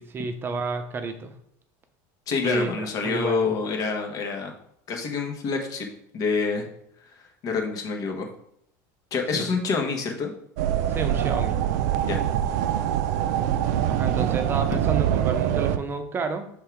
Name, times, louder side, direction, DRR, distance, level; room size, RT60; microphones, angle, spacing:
voice 1, 0.0-1.3 2.4-3.5 9.3-9.5 10.9-11.6 13.9-16.5, right 3 dB, 25° right, 8 dB, 0.7 m, -30 dB
voice 2, 2.3-4.5 4.9-6.7 7.2-8.3 9.1-10.3 12.0-12.2, left 4 dB, 45° left, 3 dB, 1.3 m, -27 dB
sound 1, 10.6-15.8, right 11 dB, 85° right, 0.5 m, -24 dB
5.5 x 3.7 x 4.6 m, 0.73 s
supercardioid pair, 135°, 9 cm